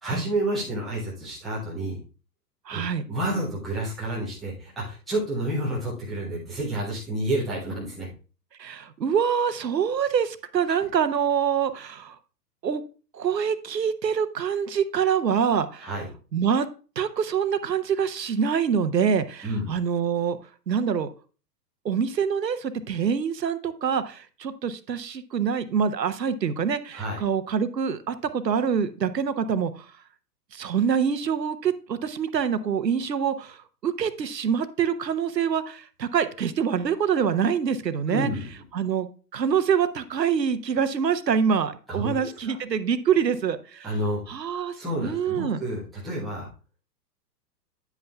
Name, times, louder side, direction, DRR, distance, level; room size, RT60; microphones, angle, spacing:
voice 1, 0.0-2.0 2.7-2.8 3.1-8.1 10.7-10.8 15.8-16.1 19.4-19.7 26.9-27.2 38.1-38.5 41.9-42.3 43.8-44.2 44.8-46.5, right 1 dB, ahead, -9 dB, 0.4 m, -29 dB
voice 2, 2.7-3.0 8.6-12.2 12.6-12.8 13.1-15.9 16.3-16.7 17.0-20.4 20.7-21.1 21.8-29.9 30.5-38.3 38.7-39.1 39.3-43.9 44.3-45.6, right 7 dB, 80° right, 12 dB, 0.9 m, -25 dB
9.4 x 8.1 x 2.3 m, 0.36 s
figure-of-eight pair, 120°, 50 cm